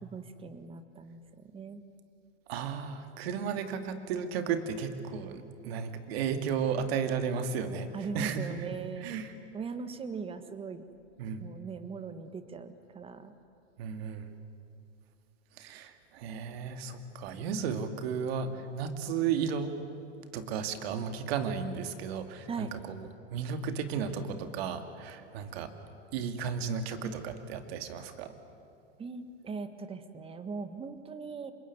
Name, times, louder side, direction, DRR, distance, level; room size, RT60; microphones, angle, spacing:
voice 1, 0.0-1.8 7.9-9.2 9.5-10.8 11.4-13.3 22.5-22.7 29.0-31.5, right 5 dB, 15° right, 11 dB, 1.6 m, -40 dB
voice 2, 2.5-9.3 11.2-11.4 13.8-14.4 15.5-19.7 20.3-25.7 26.1-28.3, right 6 dB, 60° right, 8 dB, 2.5 m, -34 dB
26.0 x 21.5 x 9.7 m, 2.6 s
hypercardioid pair, 135°, 35 cm